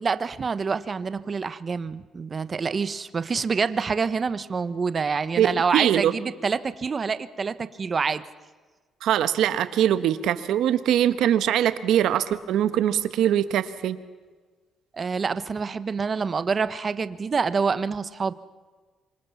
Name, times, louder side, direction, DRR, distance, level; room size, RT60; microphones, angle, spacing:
voice 1, 0.0-8.2 14.9-18.3, right 5 dB, 40° right, 13 dB, 1.2 m, -27 dB
voice 2, 5.4-6.1 9.0-14.0, right 10 dB, 80° right, 12 dB, 1.4 m, -22 dB
27.0 x 25.0 x 7.2 m, 1.4 s
cardioid pair, 90°, 0 cm